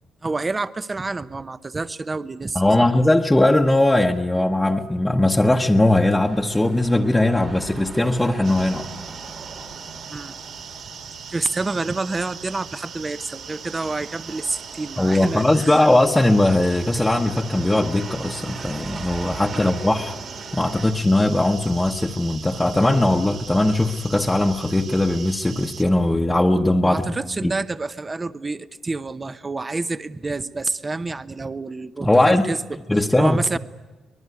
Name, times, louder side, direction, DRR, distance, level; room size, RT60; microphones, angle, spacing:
voice 1, 0.2-2.9 10.1-10.3 11.3-15.8 19.5-19.7 26.8-33.6, right 3 dB, 25° right, 13 dB, 0.8 m, -28 dB
voice 2, 2.5-8.9 15.0-20.2 20.5-27.0 27.4-27.5 32.0-32.5 32.9-33.6, left 1 dB, 10° left, 0 dB, 1.1 m, -19 dB
sound 1, 5.4-20.9, right 4 dB, 45° right, 2.2 m, -40 dB
sound 2, 8.4-25.8, right 6 dB, 70° right, 1.9 m, -40 dB
24.0 x 20.5 x 9.6 m, 1.2 s
cardioid pair, 90°, 0 cm